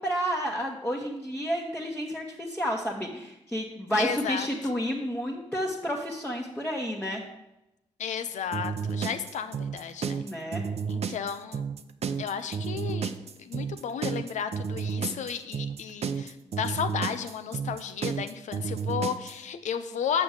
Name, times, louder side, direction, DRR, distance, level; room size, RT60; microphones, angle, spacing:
voice 1, 0.0-7.2 10.2-10.6, equal, 10° left, -2 dB, 1.3 m, -30 dB
voice 2, 4.0-4.5 8.0-10.2 10.9-11.7 12.2-13.1 13.4-20.2, left 7 dB, 85° left, 10 dB, 0.7 m, -33 dB
sound 1, 8.5-19.3, right 6 dB, 60° right, 0.6 m, -31 dB
6.9 x 5.4 x 7.3 m, 0.91 s
cardioid pair, 70°, 12 cm